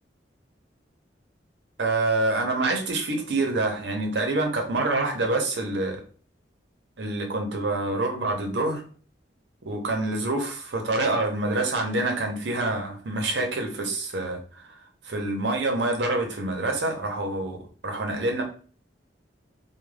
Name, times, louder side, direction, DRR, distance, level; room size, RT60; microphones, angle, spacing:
voice 1, 1.8-6.0 7.0-8.8 9.7-18.4, right 2 dB, 80° right, 3 dB, 0.7 m, -26 dB
2.3 x 2.2 x 3.2 m, 0.41 s
head